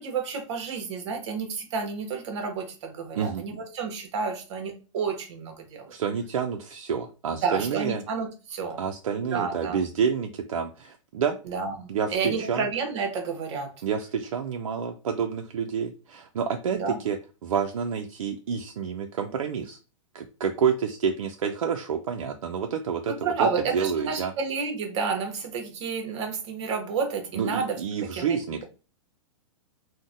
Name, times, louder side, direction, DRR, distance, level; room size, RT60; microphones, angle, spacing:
voice 1, 0.0-5.9 7.4-8.8 9.2-9.8 11.4-13.7 16.7-17.0 23.1-28.4, right 5 dB, 60° right, 4 dB, 0.9 m, -30 dB
voice 2, 5.9-8.0 8.8-11.4 11.9-12.6 13.8-17.2 17.4-19.8 20.1-24.3 27.3-28.6, right 7 dB, 90° right, 4 dB, 0.4 m, -28 dB
3.8 x 2.1 x 2.5 m, 0.34 s
hypercardioid pair, 140°, 17 cm